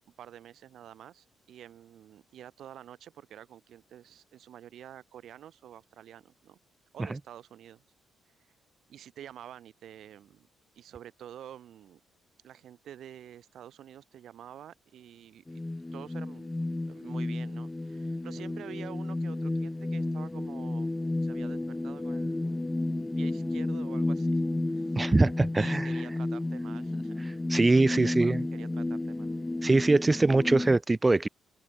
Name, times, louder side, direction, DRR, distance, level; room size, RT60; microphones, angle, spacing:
voice 1, 0.0-6.6 6.9-7.8 8.9-10.5 10.7-12.0 12.4-15.6 15.9-16.5 16.9-20.9 21.2-22.5 23.2-24.4 24.7-25.0 25.6-27.2 27.8-29.3, right 10 dB, 70° right, 7.9 m, -48 dB
sound 1, 15.5-30.8, left 2 dB, 15° left, 2.1 m, -32 dB
voice 2, 25.0-26.0 27.5-28.5 29.6-31.3, right 3 dB, 20° right, 0.4 m, -23 dB
cardioid pair, 90°, 0 cm